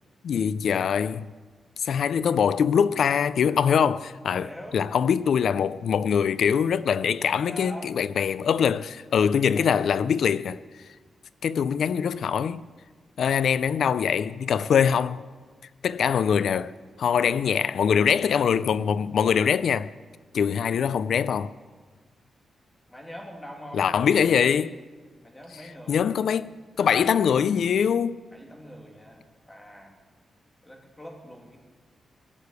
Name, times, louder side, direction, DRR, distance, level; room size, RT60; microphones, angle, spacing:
voice 1, 0.2-1.2 1.8-10.6 11.4-12.6 13.2-15.2 15.8-16.7 17.0-19.9 20.3-21.5 23.7-24.7 25.9-26.5 26.8-28.2, left 7 dB, 65° left, 0.3 m, -23 dB
voice 2, 4.3-4.8 7.2-7.9 9.5-10.1 22.9-24.5 25.2-26.1 28.3-30.0 30.6-31.6, equal, 10° left, 2.2 m, -43 dB
18.5 x 6.7 x 8.1 m
wide cardioid pair, 170°, 0 cm